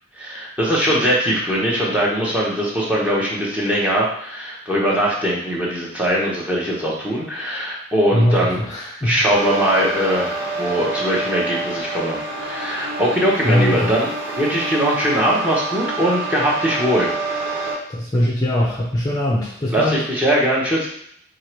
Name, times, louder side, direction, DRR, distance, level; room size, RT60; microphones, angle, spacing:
voice 1, 0.2-8.6 9.0-14.1 14.4-17.1 19.7-20.9, equal, 5° right, -5 dB, 1.1 m, -21 dB
voice 2, 8.1-9.2 13.4-13.9 17.9-20.0, equal, 20° left, -5 dB, 0.6 m, -20 dB
sound 1, 9.3-17.7, right 3 dB, 50° right, 1.5 m, -27 dB
4.7 x 2.5 x 4.5 m, 0.69 s
head